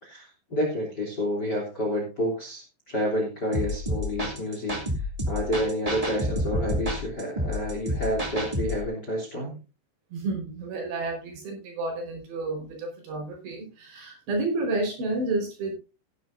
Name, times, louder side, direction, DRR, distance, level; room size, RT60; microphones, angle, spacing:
voice 1, 0.0-9.6, equal, 25° left, 2.9 m, -29 dB
sound 1, 3.5-8.8, equal, 35° right, 0.5 m, -29 dB
voice 2, 10.1-15.8, right 2 dB, 65° right, 6.6 m, -30 dB
16.0 x 11.0 x 2.6 m
omnidirectional pair, 5.5 m